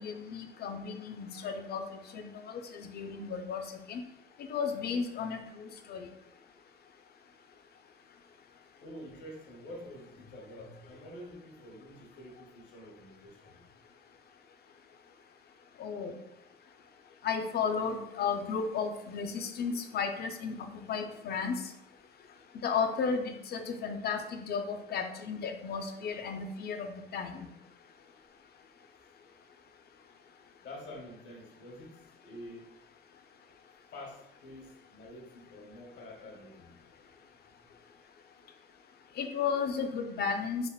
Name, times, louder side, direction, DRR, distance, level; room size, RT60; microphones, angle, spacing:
voice 1, 0.0-1.8 2.1-3.6 3.9-4.0 4.5-6.1 15.8-16.1 17.2-21.6 22.6-27.5 39.2-40.7, left 6 dB, 55° left, 6 dB, 0.4 m, -34 dB
voice 2, 8.8-13.6 30.6-32.7 33.9-36.8, left 1 dB, 70° left, 0 dB, 0.8 m, -48 dB
3.4 x 2.1 x 2.2 m, 0.87 s
cardioid pair, 90°, 20 cm